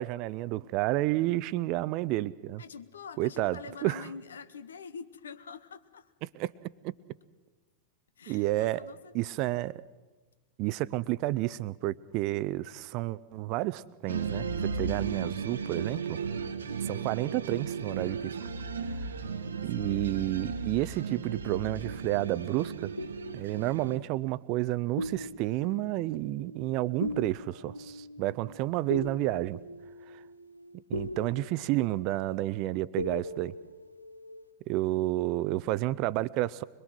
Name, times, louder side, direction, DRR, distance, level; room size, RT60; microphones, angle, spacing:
voice 1, 0.0-2.6 3.2-4.0 6.2-6.9 8.3-8.8 9.1-9.8 10.6-14.5 14.8-16.2 16.8-18.3 19.6-22.9 23.3-29.6 30.1-30.2 30.9-33.5 34.7-36.6, right 17 dB, 40° right, 18 dB, 0.6 m, -30 dB
voice 2, 2.6-6.1 8.2-9.5 19.5-19.9 34.9-35.2, left 5 dB, 70° left, 12 dB, 1.0 m, -46 dB
sound 1, 14.1-24.0, right 5 dB, 70° right, 1.1 m, -35 dB
sound 2, 21.3-22.4 23.0-24.7 25.0-34.5, left 1 dB, 90° left, 0.7 m, -41 dB
23.0 x 22.5 x 6.2 m, 1.3 s
figure-of-eight pair, 90°, 0 cm